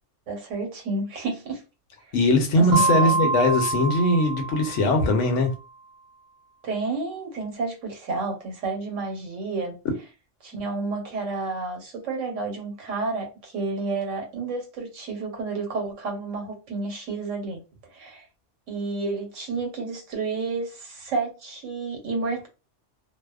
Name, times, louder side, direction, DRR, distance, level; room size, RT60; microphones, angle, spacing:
voice 1, 0.3-1.6 2.6-3.4 6.6-9.8 10.4-17.6 17.9-18.3 18.7-22.5, right 3 dB, 90° right, 1.2 m, -30 dB
voice 2, 2.1-5.5, left 1 dB, 80° left, 1.0 m, -20 dB
Mallet percussion, 2.7-5.3, right 4 dB, 65° right, 0.8 m, -26 dB
2.7 x 2.0 x 2.3 m
omnidirectional pair, 1.2 m